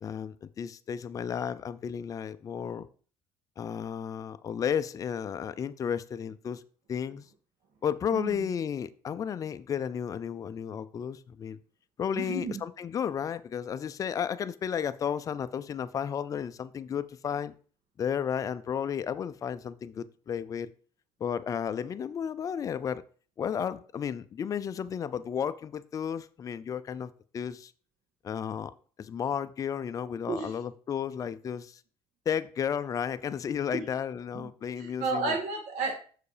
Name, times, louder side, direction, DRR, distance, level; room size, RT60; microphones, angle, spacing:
voice 1, 0.0-2.9 3.6-6.6 6.9-7.2 7.8-11.6 12.0-17.5 18.0-20.7 21.2-23.0 23.4-27.7 28.2-28.7 29.0-31.8 32.3-35.3, left 8 dB, 35° left, 0.5 m, -33 dB
voice 2, 8.1-8.5 12.2-12.6 30.3-30.5 33.7-33.8 34.3-34.5 34.8-35.9, right 3 dB, 85° right, 2.6 m, -32 dB
6.6 x 4.8 x 5.0 m
cardioid pair, 130°, 10 cm